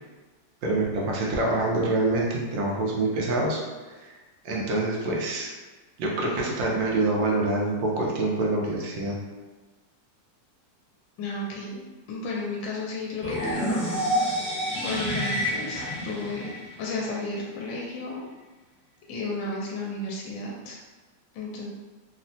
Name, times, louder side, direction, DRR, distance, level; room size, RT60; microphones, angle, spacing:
voice 1, 0.6-3.6 4.0-4.2 4.4-5.6 6.0-9.2, right 2 dB, 90° right, -2 dB, 1.3 m, -26 dB
voice 2, 11.2-11.8 12.1-13.8 14.1-14.5 14.8-16.5 16.8-18.2 19.1-20.8 21.3-21.7, left 2 dB, 85° left, -3 dB, 1.3 m, -33 dB
sound 1, 13.2-17.2, equal, 30° left, 1.1 m, -28 dB
3.4 x 2.1 x 2.6 m, 1.3 s
omnidirectional pair, 2.0 m